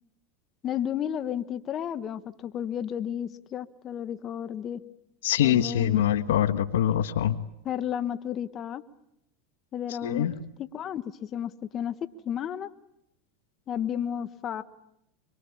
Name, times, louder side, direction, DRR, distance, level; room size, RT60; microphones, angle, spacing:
voice 1, 0.6-4.8 5.4-6.1 7.6-8.8 9.7-10.3 10.6-12.0 12.2-12.7 13.7-14.6, left 9 dB, 35° left, 12 dB, 1.4 m, -32 dB
voice 2, 5.2-7.3 10.0-10.3, left 11 dB, 80° left, 12 dB, 1.4 m, -24 dB
25.0 x 23.5 x 8.7 m, 0.79 s
hypercardioid pair, 105°, 0 cm